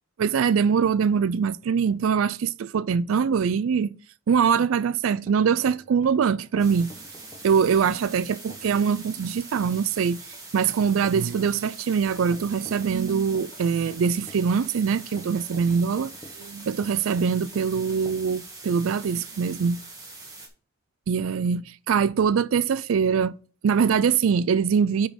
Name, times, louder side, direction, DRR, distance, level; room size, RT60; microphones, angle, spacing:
voice 1, 0.2-3.9 4.3-6.9 7.4-10.2 10.5-16.1 16.4-19.8 21.1-23.3 23.6-25.1, right 6 dB, 80° right, 0.4 m, -23 dB
sound 1, 5.1-18.1, left 1 dB, 20° left, 1.1 m, -49 dB
sound 2, 6.6-20.5, right 3 dB, 20° right, 1.9 m, -43 dB
9.5 x 3.8 x 5.2 m
head